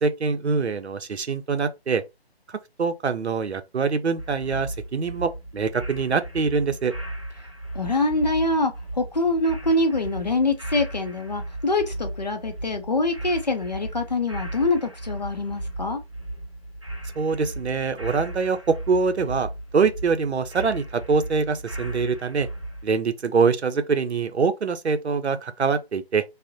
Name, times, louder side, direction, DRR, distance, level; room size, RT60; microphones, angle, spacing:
voice 1, 0.0-2.0 2.5-6.9 17.2-22.5 22.8-26.2, right 5 dB, 90° right, 0.5 m, -24 dB
sound 1, 4.2-22.8, right 1 dB, 30° right, 0.4 m, -36 dB
voice 2, 7.7-16.0, left 2 dB, 40° left, 0.4 m, -24 dB
2.5 x 2.0 x 2.6 m
figure-of-eight pair, 155°, 32 cm